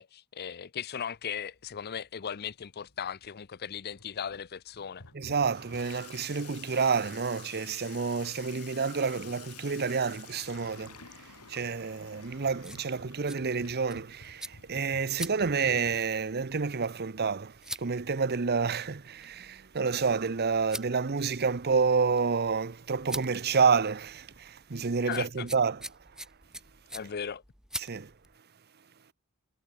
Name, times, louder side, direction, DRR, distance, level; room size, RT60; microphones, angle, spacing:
voice 1, 0.0-5.0 25.0-25.5 26.9-27.4, left 8 dB, 45° left, 0.6 m, -37 dB
Water tap faucet / Sink (filling or washing), 1.0-17.0, left 6 dB, 90° left, 2.8 m, -52 dB
voice 2, 5.1-11.0 11.5-25.8 27.8-28.1, right 5 dB, 45° right, 0.8 m, -29 dB
sound 1, 12.5-28.4, right 1 dB, 5° right, 2.5 m, -46 dB
head